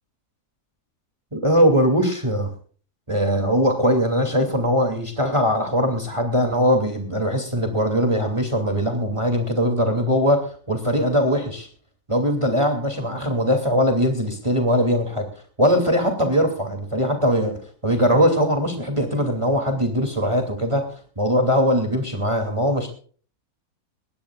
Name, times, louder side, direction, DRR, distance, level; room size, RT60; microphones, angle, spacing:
voice 1, 1.3-2.5 3.1-11.7 12.1-15.3 15.6-22.9, equal, 20° right, 4 dB, 2.8 m, -21 dB
20.5 x 17.5 x 2.4 m, 0.44 s
omnidirectional pair, 1.7 m